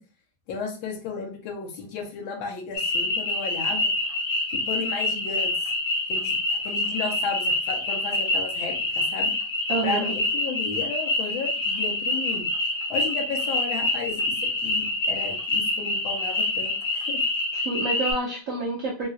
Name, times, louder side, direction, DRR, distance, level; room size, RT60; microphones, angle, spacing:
voice 1, 0.5-3.9 4.5-5.5 6.1-9.3 9.8-12.5 12.9-17.2, left 5 dB, 80° left, 1 dB, 1.6 m, -33 dB
sound 1, 2.7-18.1, left 2 dB, 50° left, 1.1 m, -26 dB
voice 2, 9.7-10.1 17.5-19.1, right 2 dB, 70° right, -2 dB, 0.8 m, -28 dB
4.3 x 2.4 x 2.3 m, 0.37 s
omnidirectional pair, 2.2 m